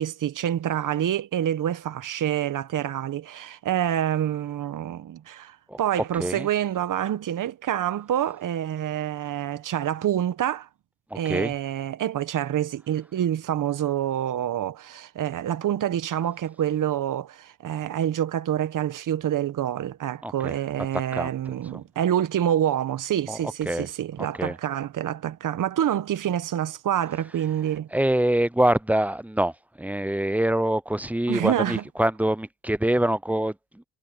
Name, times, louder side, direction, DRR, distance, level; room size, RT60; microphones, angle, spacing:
voice 1, 0.0-10.7 11.1-27.9 31.3-31.8, right 10 dB, 65° right, 1.5 m, -27 dB
voice 2, 11.1-11.5 20.2-20.5 21.1-21.3 21.7-21.8 23.3-23.4 23.7-23.9 24.4-24.5 27.9-29.5 29.8-33.5, right 1 dB, 5° right, 0.8 m, -24 dB
hypercardioid pair, 45°, 33 cm